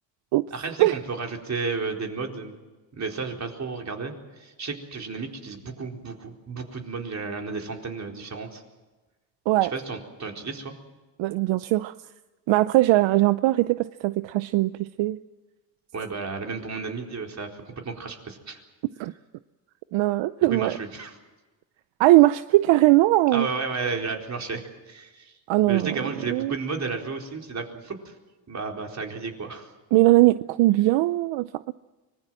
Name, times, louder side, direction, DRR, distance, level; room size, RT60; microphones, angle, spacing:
voice 1, 0.5-2.5 2.9-8.6 9.7-10.7 15.9-18.6 20.5-21.2 23.3-25.4 25.7-28.1 28.5-29.7, right 4 dB, 35° right, 2 dB, 4.3 m, -33 dB
voice 2, 11.2-11.9 12.5-15.2 19.0-19.1 19.9-20.8 22.0-23.5 25.5-26.0 26.3-26.5 29.9-31.5, right 17 dB, 75° right, 14 dB, 0.7 m, -20 dB
24.5 x 20.5 x 7.6 m, 1.2 s
cardioid pair, 85°, 46 cm